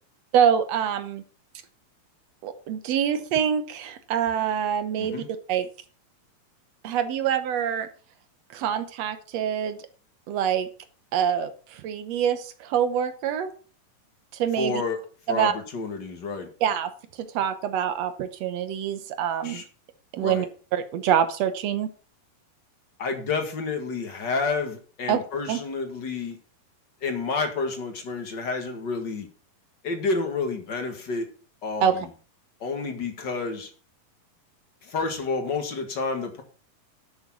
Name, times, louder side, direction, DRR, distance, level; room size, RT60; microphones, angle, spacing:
voice 1, 0.3-1.2 2.4-5.2 5.5-5.7 6.8-7.9 8.5-9.8 10.3-10.7 11.1-13.5 14.3-14.8 15.3-15.5 16.6-16.9 17.2-19.6 20.1-20.5 20.7-21.9 25.1-25.2 25.5-25.6 31.8-32.0, right 8 dB, 70° right, 10 dB, 1.6 m, -25 dB
voice 2, 14.6-15.0 15.3-16.5 19.4-19.6 20.1-20.5 23.0-26.4 27.0-29.3 29.8-31.3 31.6-32.1 32.6-33.7 34.8-36.4, left 4 dB, 40° left, 5 dB, 1.8 m, -29 dB
11.0 x 6.6 x 6.0 m, 0.39 s
omnidirectional pair, 4.0 m